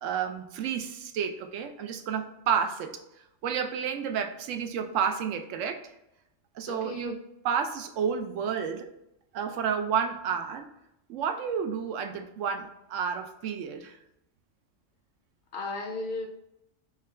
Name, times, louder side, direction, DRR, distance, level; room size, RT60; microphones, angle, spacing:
voice 1, 0.0-3.0 3.4-5.8 6.6-7.2 7.4-8.9 9.3-10.7 11.1-14.0, right 7 dB, 90° right, 6 dB, 0.9 m, -30 dB
voice 2, 6.7-7.1 15.5-16.3, left 2 dB, 55° left, 3 dB, 0.6 m, -35 dB
4.8 x 2.2 x 3.2 m, 0.84 s
omnidirectional pair, 1.3 m